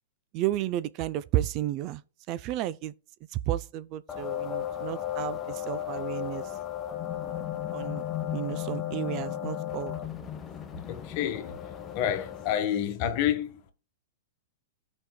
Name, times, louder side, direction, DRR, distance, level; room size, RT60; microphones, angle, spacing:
voice 1, 0.3-2.0 2.3-2.9 3.5-6.5 7.7-8.0 8.3-10.0, right 13 dB, 40° right, 0.4 m, -32 dB
sound 1, 4.1-12.6, left 11 dB, 20° left, 0.9 m, -35 dB
voice 2, 10.9-11.6 11.9-13.7, left 10 dB, 45° left, 1.3 m, -29 dB
16.0 x 5.3 x 2.2 m
hypercardioid pair, 125°, 0 cm